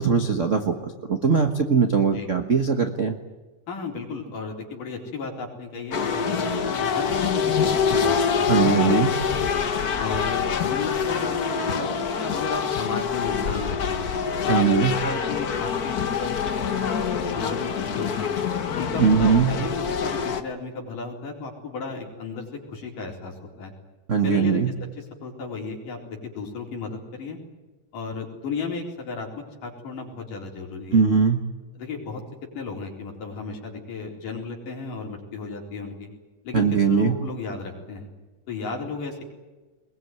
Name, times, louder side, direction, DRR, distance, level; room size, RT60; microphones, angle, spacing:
voice 1, 0.0-3.1 8.5-9.1 14.5-14.9 19.0-19.5 24.1-24.7 30.9-31.4 36.5-37.2, right 6 dB, 60° right, 6 dB, 0.7 m, -20 dB
voice 2, 3.7-9.0 9.2-9.4 10.0-14.1 14.4-16.8 17.1-18.3 18.7-19.7 20.0-23.7 24.2-24.6 25.0-27.4 27.9-31.0 31.8-32.2 32.6-36.1 36.4-38.1 38.5-39.2, left 4 dB, 80° left, 0 dB, 5.7 m, -34 dB
sound 1, 5.9-20.4, left 6 dB, 65° left, 0.9 m, -25 dB
21.5 x 21.0 x 9.4 m, 1.2 s
omnidirectional pair, 3.7 m